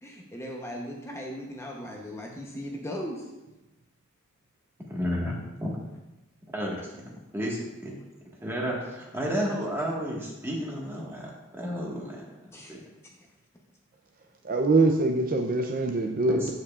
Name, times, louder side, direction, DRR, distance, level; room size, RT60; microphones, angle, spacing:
voice 1, 0.0-3.2 12.5-12.7, equal, 15° left, -1 dB, 0.9 m, -37 dB
voice 2, 4.9-5.7 6.5-7.9 8.4-12.2 12.7-12.8 16.3-16.5, equal, 10° right, -3 dB, 1.6 m, -32 dB
voice 3, 14.4-16.5, right 2 dB, 40° right, 3 dB, 0.5 m, -23 dB
13.5 x 5.4 x 2.4 m, 1.0 s
head